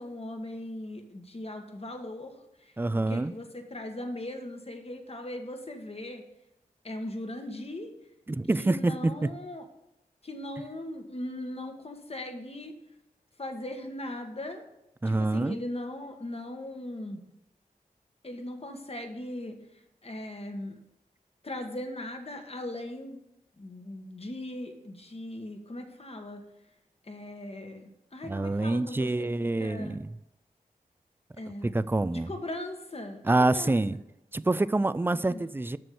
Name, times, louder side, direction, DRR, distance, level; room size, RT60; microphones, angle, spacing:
voice 1, 0.0-2.7 3.1-6.2 6.8-7.9 8.6-9.6 10.2-12.7 13.4-14.6 15.0-17.2 18.2-19.6 20.0-20.8 21.4-23.2 23.6-26.4 27.0-30.0 31.4-31.8 32.1-33.8 35.3-35.4, left 1 dB, 40° left, 1.5 m, -39 dB
voice 2, 2.8-3.3 8.3-9.4 15.0-15.6 28.2-30.2 31.6-32.3 33.2-34.0 34.3-35.8, right 2 dB, 15° right, 0.4 m, -26 dB
7.6 x 6.2 x 6.9 m
cardioid pair, 45°, 15 cm